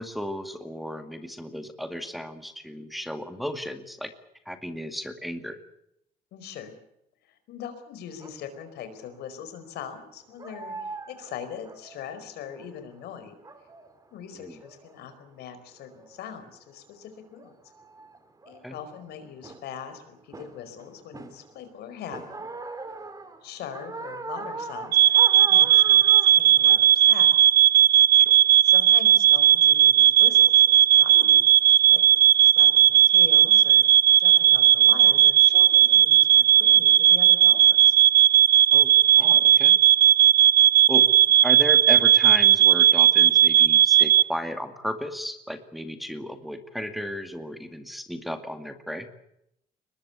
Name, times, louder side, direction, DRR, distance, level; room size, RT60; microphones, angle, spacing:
voice 1, 0.0-4.1 4.5-5.6 14.3-14.6 18.6-18.8 28.3-28.4 38.7-39.8 40.9-41.1 41.4-49.1, equal, ahead, 7 dB, 2.2 m, -34 dB
voice 2, 6.3-6.7 7.3-13.3 14.1-17.5 18.4-22.5 23.4-25.0 25.4-27.3 28.6-32.0 32.4-33.8 34.2-38.0, left 8 dB, 75° left, 9 dB, 4.8 m, -41 dB
sound 1, 8.2-8.4 9.2-9.5 10.0-10.1 10.4-13.0 13.3-13.9 14.3-15.1 15.8-16.2 17.0-17.1 17.4-19.1 19.4-19.8 20.3-21.7 22.1-26.8, right 3 dB, 20° right, 3.0 m, -40 dB
sound 2, 24.9-44.2, right 11 dB, 65° right, 0.9 m, -16 dB
23.0 x 20.5 x 8.4 m, 0.78 s
cardioid pair, 110°, 17 cm